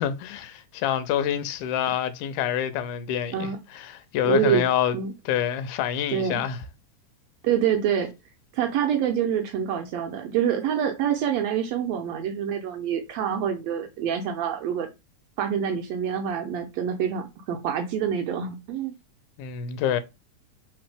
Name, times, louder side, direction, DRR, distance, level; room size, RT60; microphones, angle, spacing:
voice 1, 0.0-5.0 5.3-6.6 19.4-20.0, left 9 dB, 85° left, 2.1 m, -27 dB
voice 2, 4.2-4.6 4.9-5.1 6.1-6.4 7.4-8.1 8.5-14.9 15.4-18.9, right 8 dB, 80° right, 1.6 m, -26 dB
3.9 x 3.9 x 3.4 m
omnidirectional pair, 3.6 m